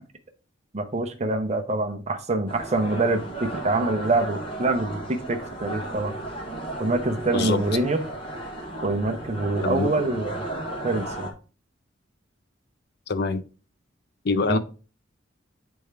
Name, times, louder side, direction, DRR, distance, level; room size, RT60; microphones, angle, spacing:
voice 1, 0.7-6.2 6.8-8.0 8.8-10.4 10.8-11.3 14.5-14.6, right 2 dB, 35° right, 0.7 m, -25 dB
sound 1, 2.5-11.3, right 1 dB, 25° left, 1.4 m, -34 dB
voice 2, 7.3-7.8 9.6-9.9 13.1-13.4 14.2-14.6, left 4 dB, 55° left, 0.5 m, -25 dB
9.1 x 3.5 x 3.3 m
head